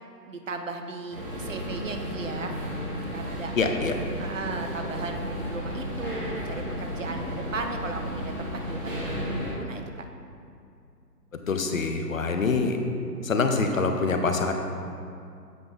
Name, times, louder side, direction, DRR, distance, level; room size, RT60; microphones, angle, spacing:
voice 1, 0.2-2.6 3.1-3.5 4.2-8.3 8.7-9.1 9.4-10.1, right 3 dB, 50° right, 5 dB, 0.7 m, -36 dB
sound 1, 1.1-9.5, equal, 35° right, 1.4 m, -33 dB
voice 2, 3.6-3.9 11.5-12.8 13.2-14.5, left 4 dB, 55° left, 5 dB, 0.8 m, -25 dB
7.9 x 5.9 x 3.6 m, 2.4 s
hypercardioid pair, 165°, 49 cm